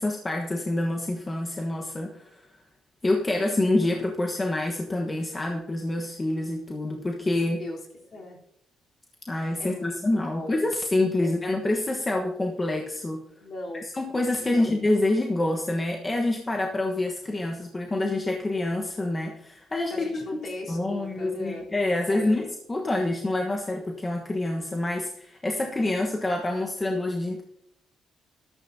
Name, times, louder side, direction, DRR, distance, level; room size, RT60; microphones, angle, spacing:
voice 1, 0.0-2.5 3.0-7.6 9.3-13.2 13.9-20.1 20.7-27.4, left 2 dB, 20° left, 1 dB, 1.3 m, -27 dB
voice 2, 7.6-8.4 9.6-10.0 10.3-10.7 11.2-11.3 13.4-13.9 14.4-14.7 19.9-22.5 25.6-25.7, left 2 dB, 50° left, -3 dB, 3.8 m, -38 dB
13.0 x 13.0 x 2.8 m, 0.75 s
cardioid pair, 90°, 0 cm